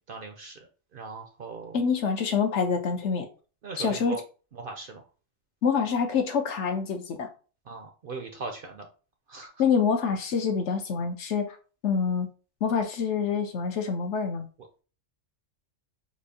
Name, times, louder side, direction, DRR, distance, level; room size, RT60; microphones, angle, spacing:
voice 1, 0.1-0.6 0.9-1.8 3.6-4.2 4.5-5.0 7.7-8.9 9.3-9.5, right 4 dB, 60° right, 4 dB, 0.6 m, -39 dB
voice 2, 1.7-3.3 3.8-4.2 5.6-7.3 9.6-11.6 11.8-12.3 12.6-14.5, left 6 dB, 70° left, 5 dB, 1.0 m, -26 dB
4.3 x 2.7 x 2.6 m, 0.36 s
omnidirectional pair, 1.3 m